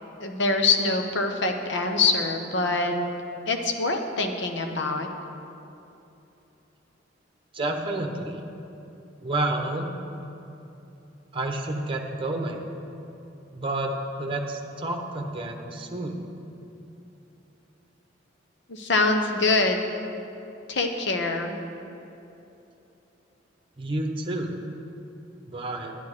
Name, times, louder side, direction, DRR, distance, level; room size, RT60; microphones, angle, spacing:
voice 1, 0.2-2.9 3.5-5.1 18.7-19.8 20.7-21.6, left 3 dB, 65° left, 4 dB, 1.0 m, -24 dB
voice 2, 7.5-8.4 9.2-9.9 11.3-12.6 13.5-13.9 14.2-16.2 23.8-24.6 25.5-26.0, right 2 dB, 30° right, 3 dB, 1.0 m, -29 dB
10.5 x 10.0 x 4.9 m, 2.9 s
head